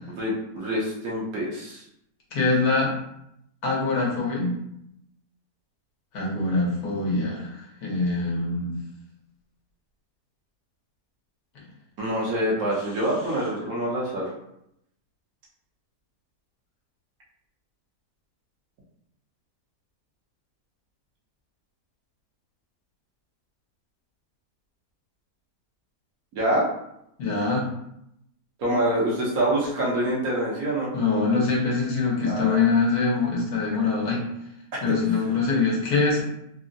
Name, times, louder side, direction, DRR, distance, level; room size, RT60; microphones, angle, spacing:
voice 1, 0.2-1.9 12.0-14.3 26.3-26.7 28.6-30.9 32.3-32.6 34.7-35.2, right 1 dB, 65° right, -5 dB, 1.2 m, -26 dB
voice 2, 2.3-2.9 3.6-4.6 6.1-7.5 7.8-8.8 27.2-27.6 30.9-34.2 34.8-36.2, left 4 dB, 70° left, -3 dB, 1.3 m, -23 dB
3.5 x 2.1 x 2.5 m, 0.78 s
omnidirectional pair, 1.7 m